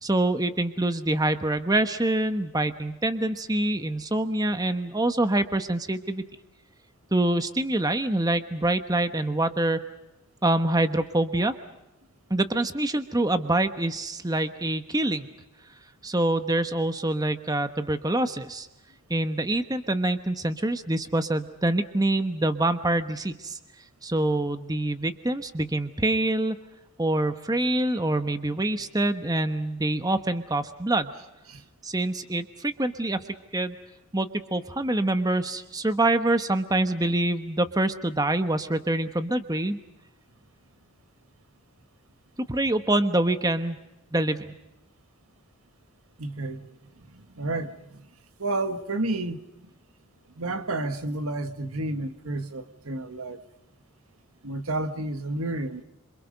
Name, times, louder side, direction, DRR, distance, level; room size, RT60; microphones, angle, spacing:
voice 1, 0.0-6.2 7.1-9.8 10.4-11.6 12.3-15.3 16.0-18.7 19.1-23.6 24.0-26.6 27.0-31.1 31.8-33.2 33.5-33.8 34.1-39.8 42.5-43.8 44.1-44.6, right 1 dB, 15° right, 1.1 m, -25 dB
voice 2, 46.2-46.7 47.0-48.1 48.4-49.7 50.4-53.4 54.4-55.8, right 2 dB, 75° right, 1.8 m, -31 dB
28.0 x 27.0 x 5.4 m
head